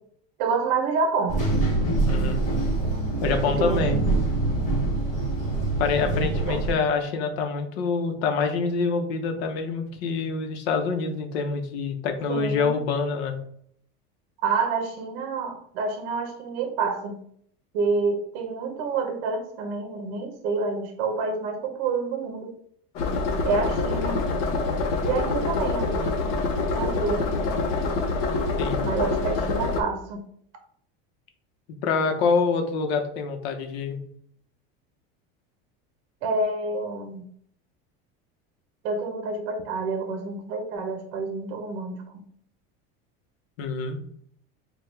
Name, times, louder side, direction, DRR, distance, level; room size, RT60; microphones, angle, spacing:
voice 1, 0.4-1.4 3.4-4.1 6.0-6.6 12.3-12.8 14.4-17.2 17.7-22.5 23.4-24.2 25.0-26.1 26.7-27.5 28.8-30.2 36.2-37.2 38.8-42.3, right 4 dB, 55° right, 6 dB, 0.8 m, -28 dB
sound 1, 1.3-6.7, right 2 dB, 25° left, 1.2 m, -25 dB
voice 2, 2.1-2.4 3.2-4.0 5.8-13.4 28.6-28.8 31.7-34.0 43.6-44.0, left 4 dB, 90° left, 6 dB, 0.8 m, -26 dB
sound 2, 23.0-29.8, left 3 dB, 55° left, 0.7 m, -26 dB
4.6 x 2.3 x 3.3 m, 0.65 s
cardioid pair, 165°, 30 cm